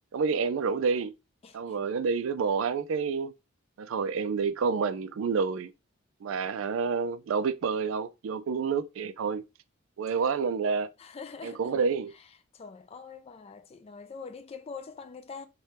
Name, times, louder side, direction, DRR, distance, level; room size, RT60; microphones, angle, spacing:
voice 1, 0.1-1.2 1.5-3.3 3.8-5.7 6.2-9.4 10.0-10.9 11.4-12.1, right 5 dB, 70° right, 0.3 m, -28 dB
voice 2, 1.4-1.8 10.1-10.4 11.0-11.7 12.1-12.3 12.5-15.5, left 5 dB, 30° left, 0.3 m, -44 dB
3.3 x 2.2 x 4.1 m
head